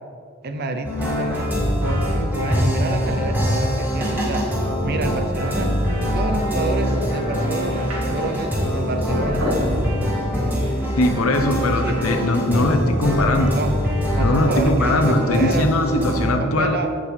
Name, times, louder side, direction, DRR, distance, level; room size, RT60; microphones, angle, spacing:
voice 1, 0.4-1.5 1.8-5.7 6.1-9.5 11.6-12.0 13.5-13.8 14.1-15.7 16.4-17.0, right 2 dB, 50° right, 6 dB, 0.5 m, -28 dB
sound 1, 0.8-16.3, equal, 10° right, 1.9 m, -23 dB
sound 2, 6.5-11.6, left 1 dB, 80° right, 2.3 m, -31 dB
voice 2, 11.0-13.6 14.2-16.8, left 1 dB, 85° left, 5 dB, 0.8 m, -20 dB
15.0 x 5.2 x 3.3 m, 2.4 s
head